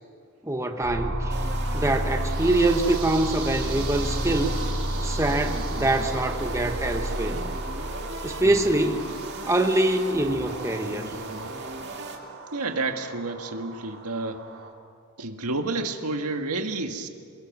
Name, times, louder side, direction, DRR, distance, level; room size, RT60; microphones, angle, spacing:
voice 1, 0.4-1.4 1.7-4.6 5.0-7.5 8.2-9.1 9.5-11.1, right 2 dB, 15° right, 5 dB, 1.1 m, -24 dB
sound 1, 0.8-14.7, right 1 dB, 70° right, 4.9 m, -32 dB
sound 2, 1.3-12.2, right 2 dB, 50° right, 2.4 m, -39 dB
voice 2, 12.5-14.4 15.2-17.1, right 3 dB, 90° right, 5 dB, 1.7 m, -30 dB
28.0 x 21.5 x 6.1 m, 2.2 s
head